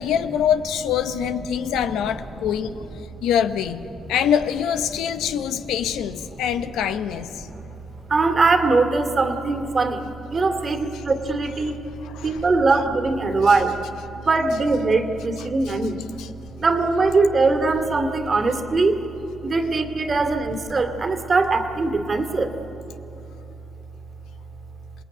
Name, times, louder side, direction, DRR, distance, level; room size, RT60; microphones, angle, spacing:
voice 1, 0.0-2.7 3.2-7.5 12.1-12.3 16.2-16.3, left 8 dB, 90° left, 9 dB, 1.0 m, -24 dB
voice 2, 2.3-2.8 4.9-5.7 6.2-6.8 7.4-7.7 8.1-11.8 12.2-13.8 14.1-16.0 16.6-19.0 19.4-22.5, right 3 dB, 40° right, 6 dB, 2.5 m, -22 dB
27.0 x 19.5 x 9.3 m, 3.0 s
cardioid pair, 70°, 0 cm